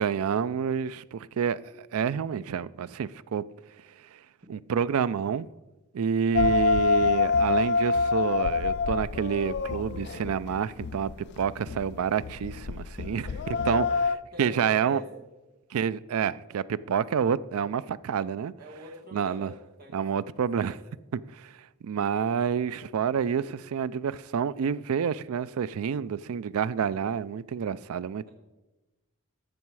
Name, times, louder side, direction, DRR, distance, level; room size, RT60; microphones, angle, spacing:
voice 1, 0.0-3.4 4.5-5.5 5.9-11.1 11.4-13.3 13.7-13.9 14.4-15.0 15.7-18.5 19.1-19.5 19.9-20.8 21.3-21.5 21.8-28.3, right 7 dB, 75° right, 0.4 m, -28 dB
sound 1, 6.3-14.2, left 4 dB, 50° left, 0.3 m, -26 dB
voice 2, 13.0-13.8 14.3-15.2 18.6-19.5 19.8-20.2 20.5-20.8, left 1 dB, 45° right, 1.5 m, -45 dB
13.0 x 7.0 x 4.7 m
head